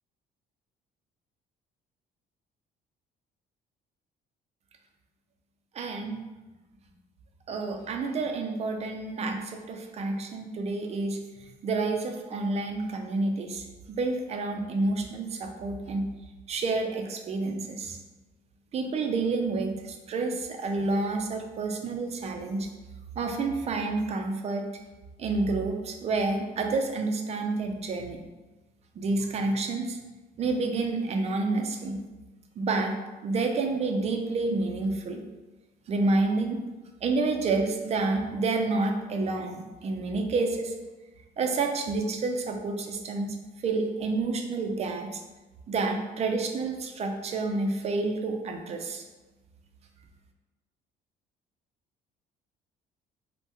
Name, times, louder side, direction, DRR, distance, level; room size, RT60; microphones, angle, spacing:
voice 1, 5.7-6.2 7.5-11.2 11.6-13.6 14.0-16.1 16.5-18.0 18.7-22.7 23.2-24.7 25.2-28.2 29.0-30.0 30.4-32.0 32.6-33.0 33.2-35.2 35.9-36.6 37.0-40.7 41.4-43.3 43.6-45.2 45.7-49.0, right 3 dB, 40° right, 4 dB, 0.4 m, -29 dB
2.7 x 2.1 x 3.3 m, 1.2 s
cardioid pair, 110°, 17 cm